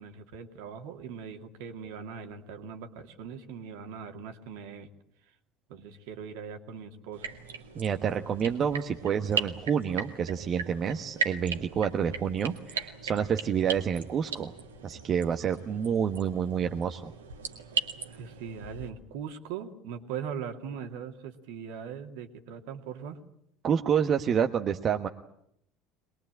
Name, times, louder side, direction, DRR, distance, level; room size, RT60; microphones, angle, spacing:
voice 1, 0.0-4.9 5.7-7.4 18.0-23.2, right 7 dB, 65° right, 6 dB, 2.4 m, -40 dB
sound 1, 7.1-18.9, right 6 dB, 80° right, 2.2 m, -38 dB
voice 2, 7.7-14.5 14.8-17.1 23.6-25.1, right 7 dB, 40° right, 6 dB, 1.3 m, -28 dB
24.0 x 21.5 x 8.9 m, 0.73 s
figure-of-eight pair, 65°, 0 cm